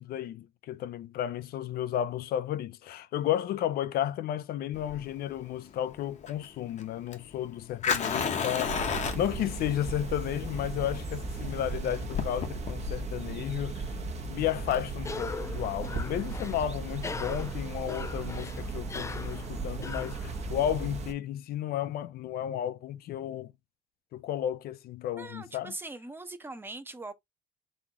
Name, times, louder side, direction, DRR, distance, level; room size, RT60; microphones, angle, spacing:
voice 1, 0.0-13.9 14.3-23.5 24.1-25.7, left 11 dB, 65° left, 0.5 m, -33 dB
Fire, 4.7-15.8, left 6 dB, 45° left, 1.0 m, -35 dB
sound 1, 8.6-21.1, right 3 dB, 40° right, 1.1 m, -36 dB
Cough, 15.0-20.8, left 4 dB, 15° left, 0.4 m, -41 dB
voice 2, 25.2-27.1, right 2 dB, 15° right, 0.9 m, -41 dB
4.1 x 3.6 x 2.9 m
cardioid pair, 110°, 17 cm